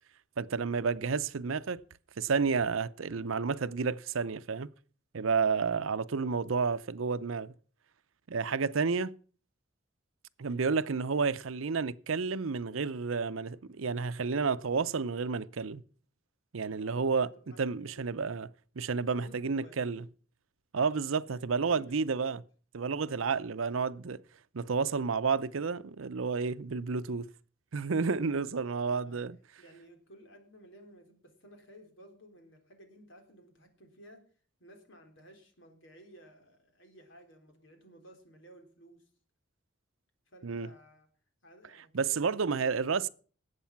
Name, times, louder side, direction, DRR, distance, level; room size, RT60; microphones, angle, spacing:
voice 1, 0.4-1.8 2.2-4.7 5.1-7.5 8.3-9.2 10.4-15.8 16.5-17.3 17.6-18.5 18.8-20.0 20.7-22.4 22.7-24.2 24.5-27.3 27.7-29.4 40.4-40.7 41.9-43.1, right 5 dB, 85° right, 0.6 m, -31 dB
voice 2, 6.2-6.5 16.8-18.3 19.1-19.8 21.3-22.3 23.0-23.2 28.8-29.2 29.6-34.2 34.6-39.0 40.3-41.1 41.4-42.8, right 1 dB, 65° left, 3.6 m, -55 dB
19.5 x 8.2 x 5.9 m
head